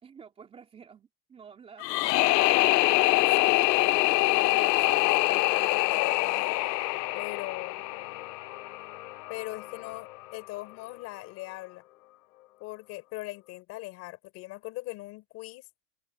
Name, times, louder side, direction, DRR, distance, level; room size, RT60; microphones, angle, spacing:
voice 1, 0.0-2.1, right 6 dB, 10° right, 3.1 m, -50 dB
sound 1, 1.8-8.8, left 20 dB, 85° left, 0.5 m, -24 dB
sound 2, 2.5-13.6, left 17 dB, 60° left, 5.4 m, -46 dB
voice 2, 3.4-6.6 7.1-7.8 9.3-11.8 12.6-15.7, left 20 dB, 30° left, 4.7 m, -40 dB
supercardioid pair, 175°, 48 cm